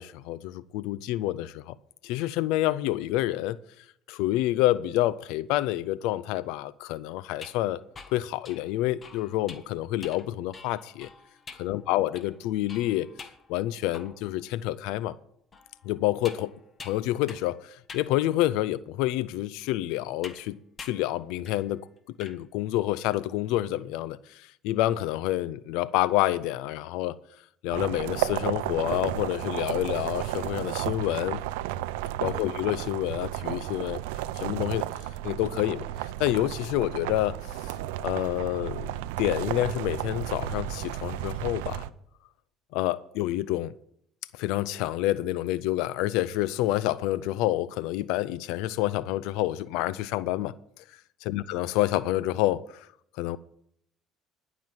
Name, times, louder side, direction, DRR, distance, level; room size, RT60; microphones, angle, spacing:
voice 1, 0.0-1.7 2.0-3.6 4.1-7.8 8.1-11.1 11.6-13.1 13.5-15.2 15.8-16.5 16.8-21.8 22.1-27.2 27.6-31.4 32.2-34.0 34.3-37.7 38.0-41.8 42.7-43.7 44.3-50.5 51.3-52.9 53.2-53.4, left 15 dB, 80° left, 0.4 m, -28 dB
sound 1, 7.3-14.4 14.9-15.0 15.5-17.6 17.9-18.1 18.8-18.9 20.2-20.5 20.8-21.1 21.5-21.7 22.0-22.4, left 4 dB, 35° left, 1.4 m, -47 dB
sound 2, 27.7-41.9, right 14 dB, 90° right, 0.5 m, -33 dB
12.0 x 6.0 x 8.9 m
supercardioid pair, 80°, 0 cm